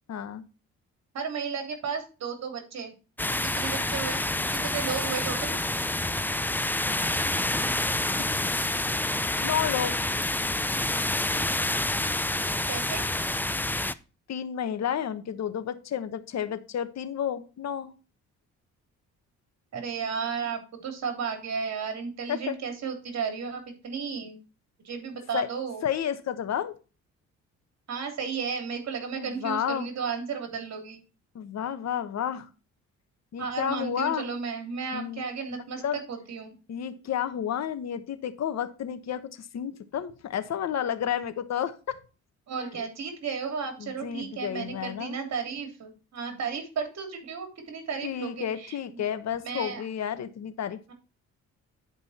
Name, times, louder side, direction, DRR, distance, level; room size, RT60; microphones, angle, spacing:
voice 1, 0.1-0.4 8.2-8.4 9.4-10.0 14.3-17.9 22.3-22.6 25.3-25.5 25.8-26.7 29.2-29.9 31.3-32.5 33.3-34.3 34.9-35.3 35.8-36.0 36.7-42.0 42.6-42.7 43.8-45.2 48.0-50.9, left 9 dB, 60° left, 11 dB, 1.2 m, -31 dB
voice 2, 1.1-2.9 3.3-5.6 12.7-13.0 19.7-24.4 24.8-25.8 27.9-31.0 33.4-36.5 42.5-49.1 49.4-49.8, right 6 dB, 60° right, 5 dB, 3.2 m, -34 dB
sound 1, 3.2-13.9, left 2 dB, 5° left, 0.5 m, -28 dB
11.0 x 5.3 x 4.2 m, 0.33 s
cardioid pair, 90°, 30 cm